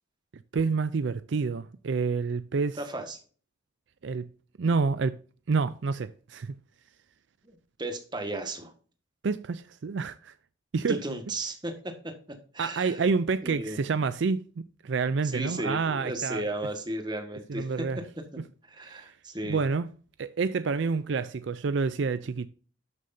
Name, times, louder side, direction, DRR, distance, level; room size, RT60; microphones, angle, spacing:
voice 1, 0.5-2.8 4.0-4.3 4.6-5.2 5.5-6.5 9.2-10.3 10.7-11.0 12.6-16.5 17.5-18.0 18.8-19.1 19.4-19.9 20.2-22.5, right 4 dB, 65° right, 0.4 m, -28 dB
voice 2, 2.8-3.2 7.8-8.7 10.9-13.0 13.4-13.8 15.2-18.0 18.7-19.6, right 1 dB, 20° right, 1.5 m, -35 dB
12.5 x 6.4 x 2.7 m
head